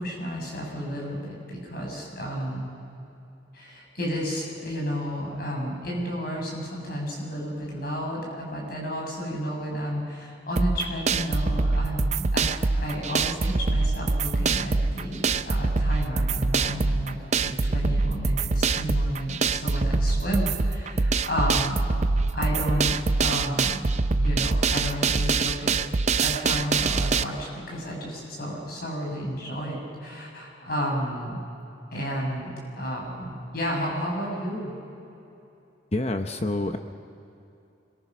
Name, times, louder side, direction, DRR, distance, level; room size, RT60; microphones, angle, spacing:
voice 1, 0.0-2.7 3.5-21.8 22.3-23.8 24.2-25.7 26.2-31.4 31.9-34.8, equal, 55° left, -1 dB, 7.1 m, -31 dB
sound 1, 10.6-27.2, right 3 dB, 40° right, 0.5 m, -24 dB
voice 2, 35.9-36.8, left 2 dB, 35° left, 6 dB, 0.9 m, -27 dB
27.0 x 22.5 x 6.2 m, 2.7 s
head